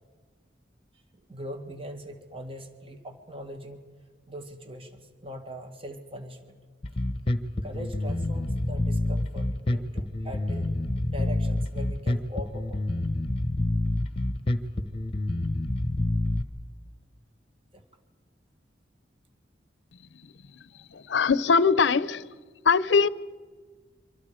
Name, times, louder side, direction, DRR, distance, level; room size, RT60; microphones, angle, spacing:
voice 1, 1.3-3.8 4.3-6.6 7.6-10.8 11.1-12.8 17.7-17.8 20.7-20.8, equal, 30° right, 5 dB, 1.9 m, -41 dB
Bass guitar, 6.8-16.4, left 1 dB, 30° left, 1.1 m, -27 dB
voice 2, 20.1-20.6 20.9-22.3 22.6-23.1, left 5 dB, 85° left, 18 dB, 0.6 m, -22 dB
27.0 x 25.5 x 5.0 m, 1.5 s
head